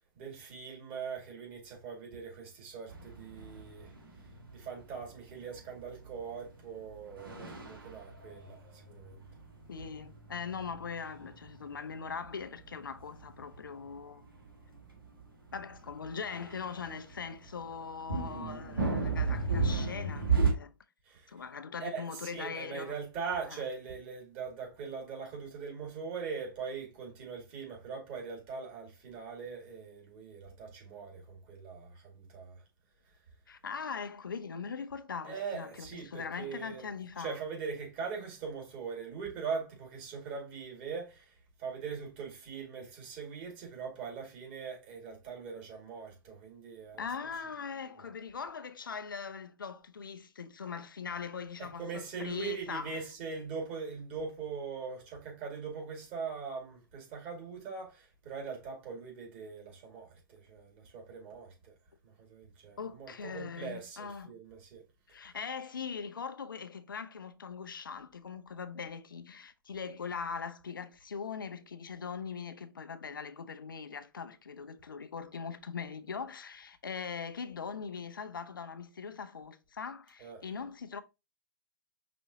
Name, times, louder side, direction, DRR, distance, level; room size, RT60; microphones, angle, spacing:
voice 1, 0.2-3.9 4.5-9.2 21.1-21.3 21.8-32.6 35.2-36.9 37.2-41.3 41.6-47.1 51.6-61.7 62.0-64.9 80.2-80.4, right 5 dB, 35° right, 2.1 m, -41 dB
sound 1, 2.9-20.5, right 4 dB, 75° right, 1.5 m, -36 dB
voice 2, 9.7-14.2 15.5-20.7 21.3-23.0 23.5-23.6 33.5-37.4 47.0-53.0 62.8-64.3 65.1-81.0, left 6 dB, 70° left, 0.5 m, -41 dB
5.1 x 3.5 x 2.7 m
figure-of-eight pair, 115°, 12 cm